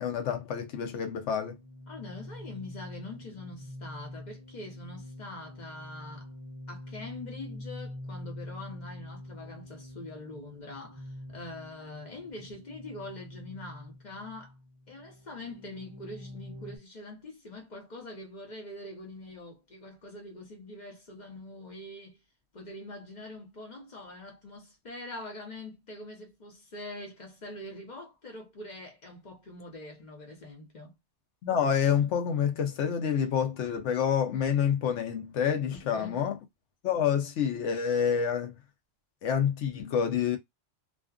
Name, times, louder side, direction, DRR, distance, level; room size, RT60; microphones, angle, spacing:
voice 1, 0.0-1.6 31.4-36.4 36.8-38.6 39.2-40.4, left 8 dB, 80° left, 1.0 m, -28 dB
sound 1, 1.5-16.8, left 1 dB, 40° right, 0.5 m, -45 dB
voice 2, 1.9-6.3 6.7-14.5 14.9-22.2 22.5-30.9 35.7-36.2, left 2 dB, 40° left, 1.0 m, -44 dB
2.4 x 2.4 x 2.3 m
omnidirectional pair, 1.2 m